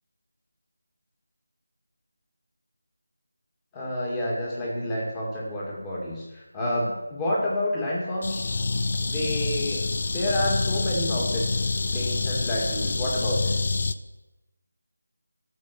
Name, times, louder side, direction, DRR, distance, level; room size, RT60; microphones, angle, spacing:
voice 1, 3.7-8.6 9.0-13.6, left 1 dB, 10° left, -5 dB, 2.3 m, -29 dB
sound 1, 8.2-14.0, left 3 dB, 45° left, 0.5 m, -27 dB
12.5 x 6.5 x 6.0 m, 1.1 s
figure-of-eight pair, 170°, 0 cm